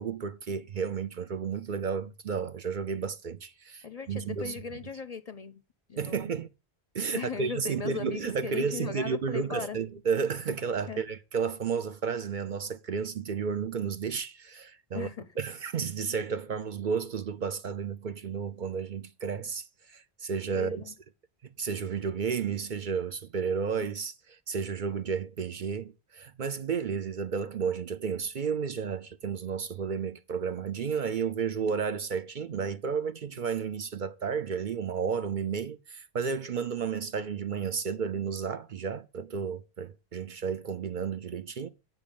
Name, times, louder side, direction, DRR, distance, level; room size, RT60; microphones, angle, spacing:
voice 1, 0.0-4.6 6.0-6.5 6.9-15.1 15.4-19.6 19.9-20.8 21.4-41.7, right 6 dB, 55° right, 0.7 m, -32 dB
voice 2, 3.8-5.6 5.9-6.2 7.1-9.8 10.9-11.0 14.9-15.3 20.5-20.9, left 5 dB, 45° left, 0.6 m, -38 dB
8.9 x 5.4 x 6.9 m
omnidirectional pair, 1.1 m